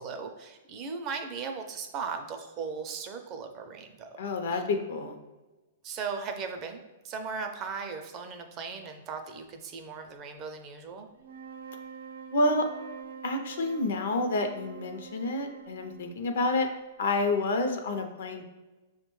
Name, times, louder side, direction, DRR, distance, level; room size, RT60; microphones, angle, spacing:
voice 1, 0.0-4.2 5.8-11.1, right 5 dB, 30° right, 5 dB, 0.4 m, -37 dB
voice 2, 4.2-5.2 12.3-12.7 13.2-16.7 17.0-18.4, left 2 dB, 75° left, 5 dB, 0.5 m, -28 dB
sound 1, 11.2-16.6, right 6 dB, 85° right, 0.6 m, -45 dB
5.3 x 2.1 x 3.0 m, 1.1 s
hypercardioid pair, 145°, 0 cm